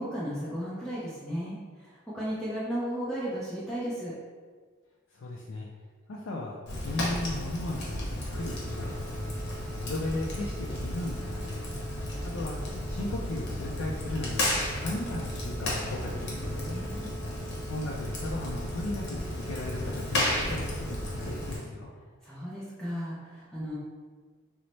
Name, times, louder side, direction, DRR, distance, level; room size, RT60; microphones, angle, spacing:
voice 1, 0.0-4.1 16.7-17.1 22.2-23.8, equal, 5° left, -9 dB, 0.5 m, -35 dB
voice 2, 5.1-5.7 6.1-9.4 9.8-11.6 12.3-12.6 12.9-14.5 14.8-16.6 17.7-21.9, left 2 dB, 70° left, -3 dB, 0.4 m, -36 dB
Fire, 6.7-21.6, left 1 dB, 55° left, 0.8 m, -33 dB
Telephone, 8.3-21.5, right 7 dB, 90° right, 0.3 m, -47 dB
3.1 x 2.0 x 4.0 m, 1.5 s
head